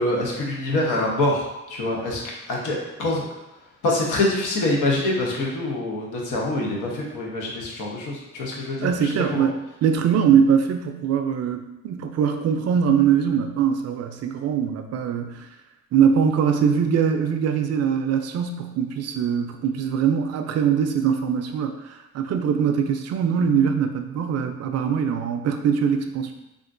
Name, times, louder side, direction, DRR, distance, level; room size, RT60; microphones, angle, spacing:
voice 1, 0.0-2.2 2.5-3.2 3.8-9.5, left 2 dB, 85° left, -2 dB, 0.9 m, -25 dB
voice 2, 8.8-9.5 9.8-15.5 15.9-26.3, right 7 dB, 55° right, 5 dB, 0.4 m, -22 dB
3.6 x 2.4 x 2.5 m, 0.95 s
cardioid pair, 90°, 30 cm